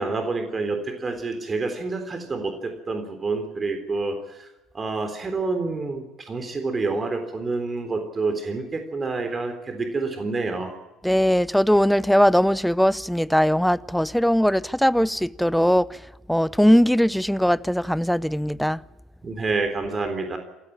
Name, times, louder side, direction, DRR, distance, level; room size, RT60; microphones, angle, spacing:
voice 1, 0.0-4.5 4.7-10.8 19.2-20.4, right 3 dB, 30° right, 3.7 m, -28 dB
voice 2, 11.0-16.0 16.3-18.8, equal, ahead, 0.7 m, -20 dB
27.5 x 14.0 x 8.8 m
hypercardioid pair, 55°, 0 cm